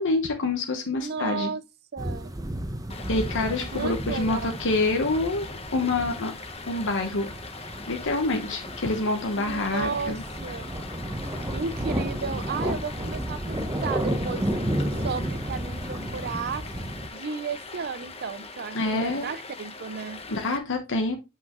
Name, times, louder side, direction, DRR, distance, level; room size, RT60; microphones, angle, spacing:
voice 1, 0.0-1.5 3.1-6.3 6.7-7.3 7.9-10.2 18.7-19.3 20.3-21.2, left 2 dB, 60° left, 1.1 m, -27 dB
voice 2, 0.9-1.6 1.9-2.3 3.7-4.6 9.3-10.7 11.5-14.5 15.0-16.6 17.1-20.2, right 5 dB, 50° right, 0.6 m, -34 dB
sound 1, 2.0-17.1, right 1 dB, 15° right, 0.9 m, -32 dB
Stream, 2.9-20.6, left 4 dB, 30° left, 1.0 m, -41 dB
8.0 x 5.6 x 3.0 m
head